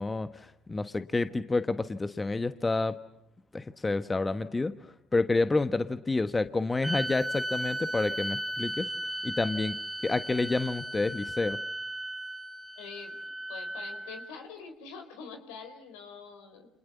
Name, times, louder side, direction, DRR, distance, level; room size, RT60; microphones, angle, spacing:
voice 1, 0.0-3.0 3.5-8.9 9.2-9.8 10.0-11.6, left 3 dB, 20° left, 11 dB, 1.3 m, -29 dB
sound 1, 6.8-14.3, right 1 dB, 10° right, 1.7 m, -36 dB
voice 2, 12.8-13.2 13.5-16.7, left 5 dB, 75° left, 6 dB, 4.6 m, -45 dB
29.5 x 27.5 x 7.3 m, 0.81 s
hypercardioid pair, 55°, 0 cm